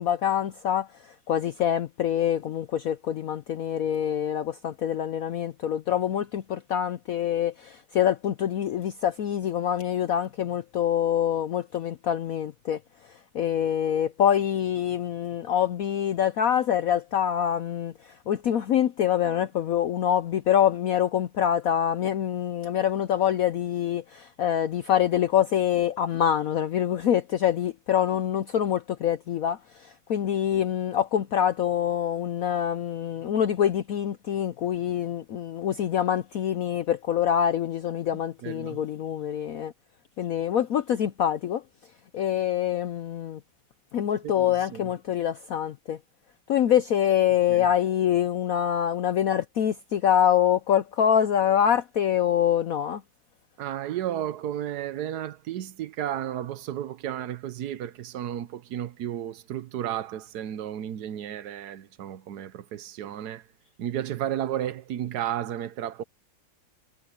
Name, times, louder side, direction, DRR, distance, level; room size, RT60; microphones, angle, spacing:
voice 1, 0.0-12.8 13.1-39.7 40.2-41.6 42.1-43.4 43.9-46.0 46.5-53.0, left 10 dB, 70° left, 0.8 m, -25 dB
voice 2, 38.4-38.8 44.2-44.9 47.5-47.7 53.6-63.5 63.8-66.0, right 11 dB, 60° right, 1.2 m, -33 dB
omnidirectional pair, 2.2 m